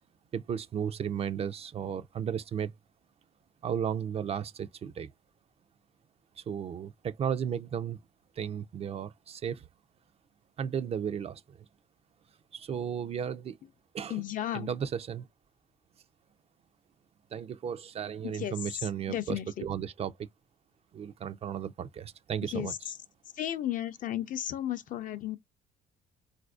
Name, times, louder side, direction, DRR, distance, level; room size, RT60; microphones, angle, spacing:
voice 1, 0.3-2.7 3.6-5.1 6.4-8.0 8.4-9.7 10.6-11.6 12.5-13.6 13.9-14.2 14.5-15.3 17.3-20.3 20.9-22.7, right 8 dB, 35° right, 0.4 m, -34 dB
voice 2, 14.1-14.7 18.2-19.7 22.4-23.0 23.3-25.4, left 12 dB, 50° left, 0.5 m, -34 dB
4.1 x 2.5 x 2.3 m
cardioid pair, 110°, 17 cm